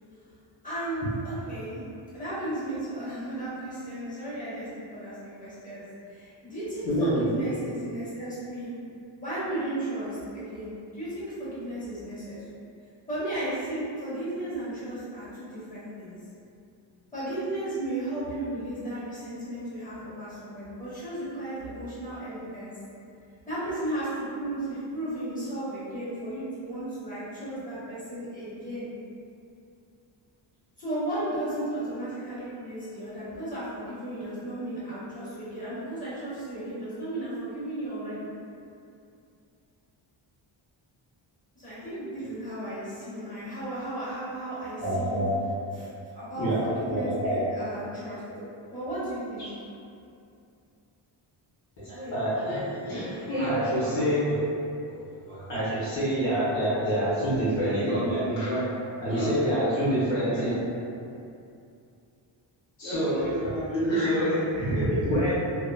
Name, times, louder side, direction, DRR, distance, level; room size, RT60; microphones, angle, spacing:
voice 1, 0.6-1.8 2.1-8.7 9.2-12.6 13.1-16.2 17.1-22.7 23.5-28.9 30.8-38.2 41.5-45.2 45.7-48.2 48.7-49.5, right 1 dB, 15° left, -13 dB, 1.4 m, -34 dB
voice 2, 6.8-7.3 44.8-45.3 45.7-45.8 46.3-47.4 49.4-49.5 51.8-54.4 54.8-55.0 55.3-58.7 59.0-60.5 62.8-65.3, equal, 65° left, -11 dB, 0.9 m, -27 dB
2.8 x 2.0 x 2.3 m, 2.6 s
cardioid pair, 80°, 48 cm